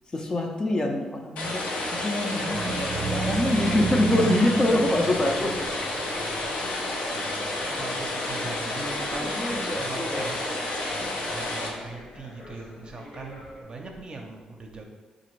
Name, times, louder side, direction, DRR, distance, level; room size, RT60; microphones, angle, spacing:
voice 1, 0.1-1.6 1.9-5.5 9.3-10.3 11.0-11.3, left 1 dB, 30° left, 2 dB, 0.5 m, -25 dB
sound 1, 1.4-11.7, left 2 dB, 80° left, 0.7 m, -30 dB
sound 2, 2.5-6.4, right 6 dB, 85° right, 0.3 m, -31 dB
sound 3, 4.2-13.6, left 2 dB, 55° left, 0.9 m, -47 dB
voice 2, 5.4-6.1 7.1-10.4 11.3-14.8, right 3 dB, 40° right, 2 dB, 0.6 m, -40 dB
4.8 x 2.5 x 3.1 m, 1.3 s
cardioid pair, 80°, 2 cm